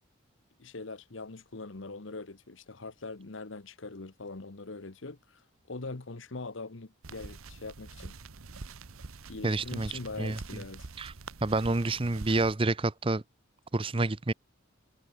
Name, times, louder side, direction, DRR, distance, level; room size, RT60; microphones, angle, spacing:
voice 1, 0.6-8.2 9.3-10.9, left 3 dB, 65° left, 1.1 m, -42 dB
sound 1, 7.0-12.5, right 3 dB, 85° right, 1.1 m, -45 dB
voice 2, 9.4-10.4 11.0-11.1 11.4-13.2 13.7-14.3, right 2 dB, 25° right, 0.6 m, -28 dB
head